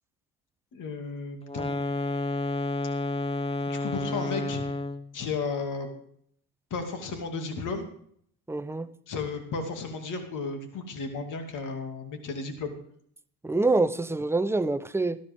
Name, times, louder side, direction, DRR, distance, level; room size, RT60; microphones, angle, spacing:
voice 1, 0.7-1.8 3.7-4.6 5.1-5.9 6.7-7.9 9.1-12.7, left 4 dB, 55° left, 2.5 m, -34 dB
sound 1, 1.4-5.1, left 2 dB, 15° left, 1.0 m, -30 dB
voice 2, 8.5-8.9 13.4-15.2, right 3 dB, 5° right, 0.6 m, -26 dB
14.0 x 13.0 x 3.6 m
supercardioid pair, 90°, 37 cm